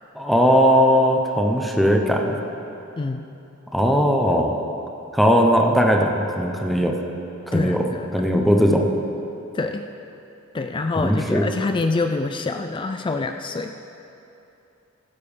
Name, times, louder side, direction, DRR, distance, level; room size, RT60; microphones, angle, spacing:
voice 1, 0.1-2.4 3.7-4.6 5.1-7.0 7.5-8.9 11.0-11.5, equal, ahead, 1 dB, 0.7 m, -19 dB
voice 2, 7.5-8.1 9.5-9.8 10.5-13.7, left 3 dB, 20° left, 6 dB, 0.3 m, -25 dB
15.5 x 6.8 x 5.1 m, 2.9 s
head